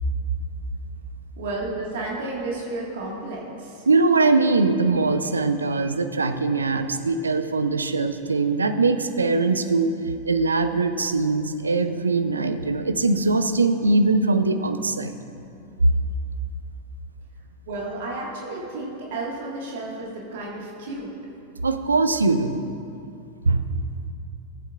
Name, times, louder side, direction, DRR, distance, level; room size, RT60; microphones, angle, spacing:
voice 1, 1.4-3.9 17.7-21.1, right 2 dB, 55° right, -4 dB, 1.7 m, -32 dB
voice 2, 3.9-9.9 10.2-15.1 15.8-15.9 21.6-22.6 23.4-23.6, right 3 dB, 75° right, 8 dB, 0.5 m, -21 dB
15.0 x 8.2 x 2.4 m, 2.6 s
figure-of-eight pair, 90°, 0 cm